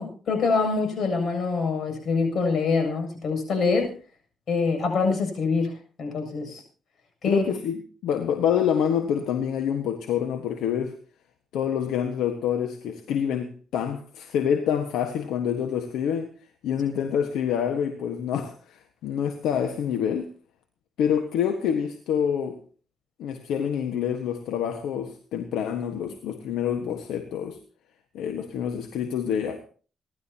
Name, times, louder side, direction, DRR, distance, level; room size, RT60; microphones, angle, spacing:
voice 1, 0.0-3.9 4.5-6.6 7.2-7.4, left 4 dB, 60° left, 5 dB, 7.5 m, -25 dB
voice 2, 7.2-7.8 8.0-11.0 11.5-16.3 16.6-20.3 21.0-22.6 23.2-27.6 28.1-29.7, left 8 dB, 85° left, 6 dB, 1.5 m, -27 dB
28.5 x 12.0 x 2.9 m, 0.40 s
cardioid pair, 70°, 0 cm